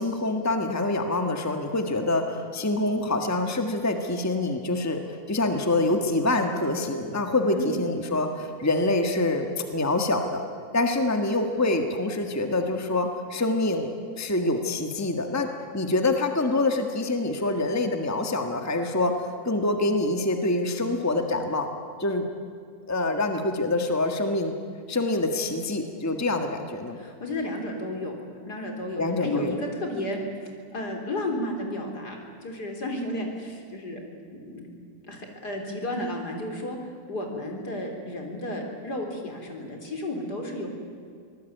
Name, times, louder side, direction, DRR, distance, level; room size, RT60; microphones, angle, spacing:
voice 1, 0.0-10.4 10.7-15.5 15.7-19.1 19.4-21.7 22.0-22.2 22.9-24.5 24.9-27.0 29.0-29.5, left 2 dB, 10° left, 5 dB, 1.5 m, -26 dB
voice 2, 26.9-28.1 28.4-30.2 30.7-34.0 34.3-34.7 35.0-36.8 37.1-40.7, left 1 dB, 65° left, 2 dB, 4.3 m, -32 dB
24.5 x 19.5 x 9.3 m, 2.3 s
omnidirectional pair, 1.9 m